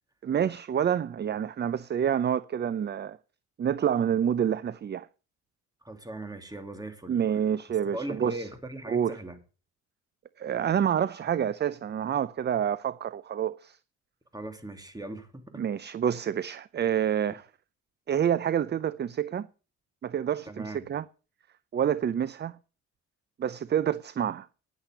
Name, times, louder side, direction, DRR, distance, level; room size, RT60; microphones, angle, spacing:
voice 1, 0.2-3.2 3.6-5.1 7.1-8.5 8.9-9.2 10.4-13.8 15.5-17.5 18.1-19.5 20.0-21.0 21.7-22.5 23.4-24.5, right 9 dB, 35° right, 0.5 m, -28 dB
voice 2, 5.8-7.2 7.9-9.4 14.3-15.6 20.4-20.8, right 1 dB, 10° right, 2.8 m, -39 dB
10.0 x 8.8 x 7.8 m
cardioid pair, 90°, 30 cm